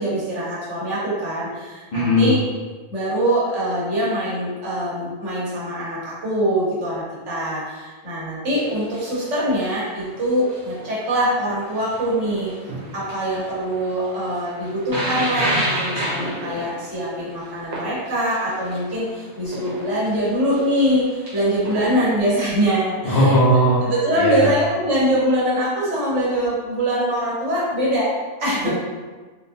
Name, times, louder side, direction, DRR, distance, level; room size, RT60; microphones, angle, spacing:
voice 1, 0.0-2.4 2.9-12.5 12.9-23.4 23.8-28.1 28.4-28.7, equal, 80° right, -8 dB, 1.5 m, -23 dB
voice 2, 1.9-2.3 23.0-23.8 24.2-24.5 28.6-28.7, equal, 45° left, -8 dB, 0.8 m, -17 dB
sound 1, 8.5-22.1, right 1 dB, 40° right, 0.8 m, -31 dB
4.0 x 2.5 x 2.6 m, 1.3 s
omnidirectional pair, 1.2 m